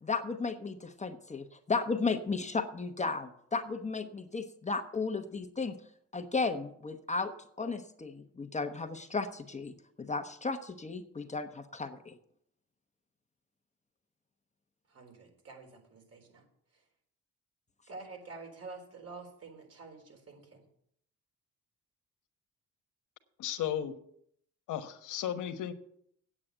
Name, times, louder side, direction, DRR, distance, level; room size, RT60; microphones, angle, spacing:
voice 1, 0.0-5.8 6.1-7.3 7.6-12.2, left 4 dB, 25° left, 7 dB, 1.0 m, -34 dB
voice 2, 14.9-16.4 17.9-20.6, right 3 dB, 55° right, 3 dB, 4.0 m, -48 dB
voice 3, 23.4-24.0 24.7-25.7, left 10 dB, 90° left, 8 dB, 1.2 m, -34 dB
8.8 x 8.6 x 7.9 m, 0.69 s
cardioid pair, 90°, 30 cm